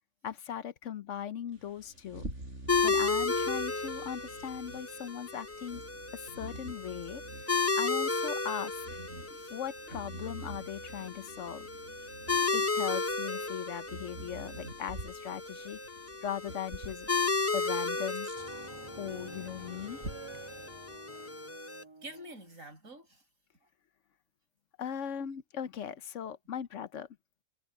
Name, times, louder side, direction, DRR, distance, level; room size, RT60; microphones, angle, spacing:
voice 1, 0.2-2.3 2.8-5.8 6.1-7.2 7.5-8.9 9.5-11.7 12.5-15.8 16.2-17.1 17.5-18.3 19.0-20.0 24.8-27.1, left 9 dB, 65° left, 1.1 m, -39 dB
Bird vocalization bird call bird song, 1.5-21.0, right 1 dB, 60° right, 7.3 m, -48 dB
sound 1, 2.7-21.8, left 4 dB, 15° left, 0.5 m, -34 dB
voice 2, 9.2-9.6 12.0-12.2 21.5-23.3, right 1 dB, 75° right, 6.7 m, -49 dB
sound 2, 18.3-22.5, right 3 dB, 25° right, 1.1 m, -50 dB
omnidirectional pair, 1.4 m